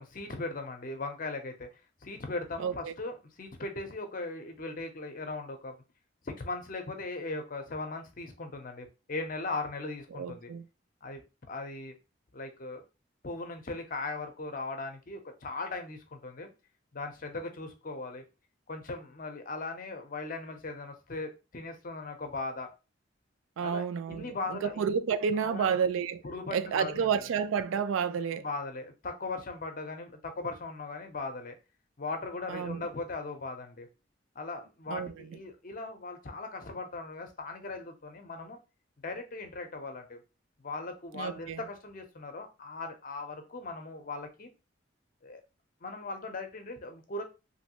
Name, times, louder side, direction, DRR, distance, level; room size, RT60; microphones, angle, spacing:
voice 1, 0.0-1.7 2.0-5.7 6.2-10.5 11.0-11.2 11.5-12.0 12.3-12.8 13.2-16.5 16.9-18.2 18.7-22.7 23.6-24.8 25.3-25.8 26.2-27.1 28.4-31.6 32.0-33.9 34.4-38.6 39.0-40.2 40.6-44.5 45.2-45.4 45.8-47.2, left 3 dB, 45° left, 0.7 m, -38 dB
voice 2, 2.6-2.9 10.2-10.6 23.6-26.2 26.5-28.5 32.5-32.8 34.9-35.1 41.1-41.6, right 7 dB, 90° right, 0.3 m, -30 dB
3.1 x 2.7 x 2.9 m
head